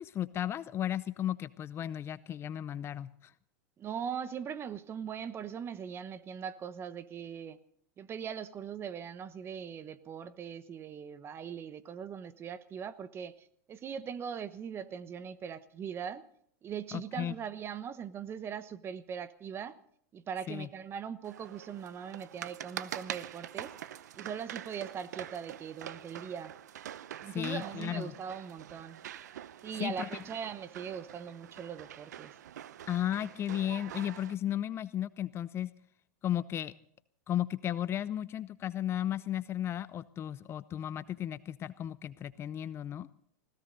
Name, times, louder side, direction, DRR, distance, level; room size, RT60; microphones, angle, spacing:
voice 1, 0.0-3.3 16.9-17.3 20.5-20.7 27.3-28.1 29.8-30.1 32.9-35.7 36.2-36.7 37.3-43.1, left 11 dB, 30° left, 16 dB, 0.6 m, -34 dB
voice 2, 3.8-7.6 8.0-16.2 16.6-19.8 20.1-23.7 24.1-26.5 27.2-29.0 29.6-32.3, right 7 dB, 25° right, 15 dB, 1.0 m, -40 dB
sound 1, 21.2-34.3, right 11 dB, 80° right, 0.8 m, -45 dB
20.0 x 16.5 x 4.0 m, 0.66 s
hypercardioid pair, 120°, 9 cm